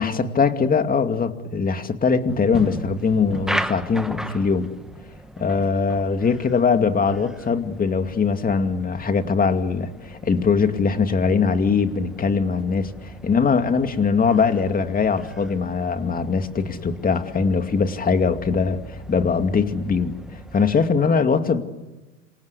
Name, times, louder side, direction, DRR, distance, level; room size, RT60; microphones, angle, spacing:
voice 1, 0.0-4.7 5.4-18.8 19.1-20.1 20.5-21.6, left 5 dB, 20° left, 7 dB, 2.5 m, -21 dB
sound 1, 2.3-20.9, right 1 dB, ahead, 1.3 m, -37 dB
27.5 x 26.5 x 8.2 m, 1.2 s
hypercardioid pair, 100°, 41 cm